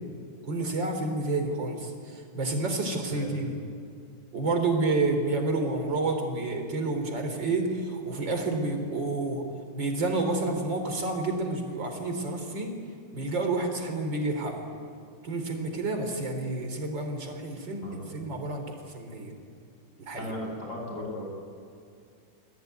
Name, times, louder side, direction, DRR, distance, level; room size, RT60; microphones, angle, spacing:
voice 1, 0.4-3.6 4.3-9.4 9.7-12.7 13.1-14.7 15.2-19.3 20.1-20.3, right 2 dB, 60° right, 5 dB, 4.2 m, -29 dB
voice 2, 17.8-18.2 20.2-21.2, left 1 dB, 40° left, -1 dB, 7.7 m, -37 dB
29.0 x 21.0 x 9.3 m, 2.3 s
omnidirectional pair, 2.3 m